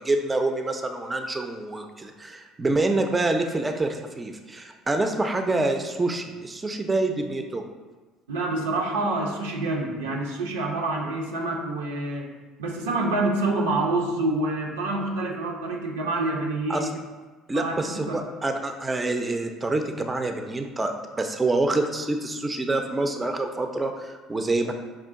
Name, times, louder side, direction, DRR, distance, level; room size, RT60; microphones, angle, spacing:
voice 1, 0.0-7.6 16.7-16.9 17.5-24.7, right 2 dB, 20° right, 5 dB, 0.4 m, -26 dB
voice 2, 8.3-12.3 12.6-16.9 17.5-18.2, right 2 dB, 85° right, 0 dB, 0.6 m, -27 dB
5.0 x 2.4 x 3.5 m, 1.3 s
hypercardioid pair, 65°, 0 cm